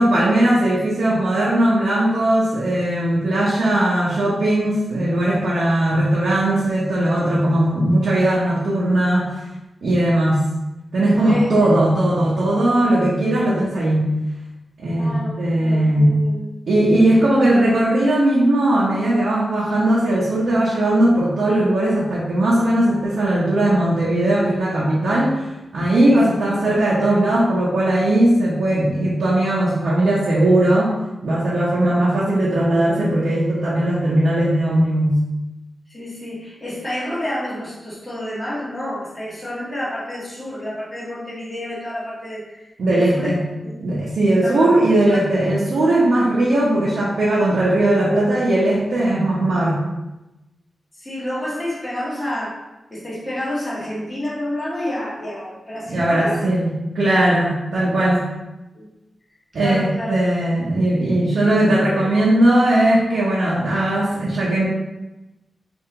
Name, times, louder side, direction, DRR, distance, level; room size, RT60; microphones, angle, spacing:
voice 1, 0.0-9.3 9.8-10.4 10.9-14.1 14.8-16.2 16.7-25.5 25.7-30.9 31.2-35.2 42.8-43.4 43.8-49.8 55.9-58.3 59.5-64.7, right 1 dB, 75° right, -7 dB, 1.0 m, -18 dB
voice 2, 11.2-11.7 15.0-16.6 17.1-17.4 26.0-26.2 35.9-43.3 43.6-43.7 44.3-44.7 45.1-45.2 51.0-52.6 52.9-56.4 58.7-58.9 59.5-60.2 61.9-62.0, left 1 dB, 15° left, -9 dB, 1.5 m, -29 dB
4.6 x 2.8 x 3.7 m, 0.99 s
wide cardioid pair, 110°, 0 cm